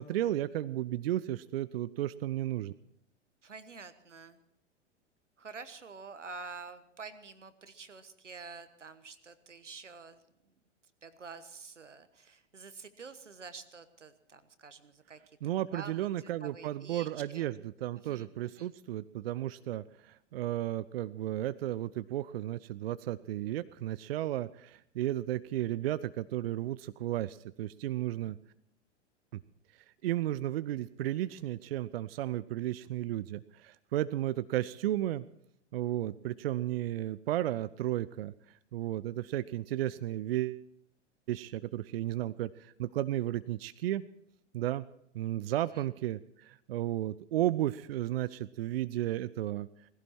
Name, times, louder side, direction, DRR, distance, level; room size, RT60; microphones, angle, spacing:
voice 1, 0.0-2.7 15.4-28.4 29.3-29.4 30.0-35.2 35.7-38.3 38.7-40.6 41.3-44.0 44.5-44.8 45.1-49.7, right 13 dB, 55° right, 15 dB, 0.5 m, -33 dB
voice 2, 3.4-4.4 5.4-10.2 11.0-15.2 15.7-16.1 16.4-17.5 17.9-18.3 18.6-18.7 45.7-45.9, right 4 dB, 85° right, 12 dB, 1.3 m, -48 dB
18.0 x 16.0 x 4.4 m, 0.72 s
figure-of-eight pair, 100°, 36 cm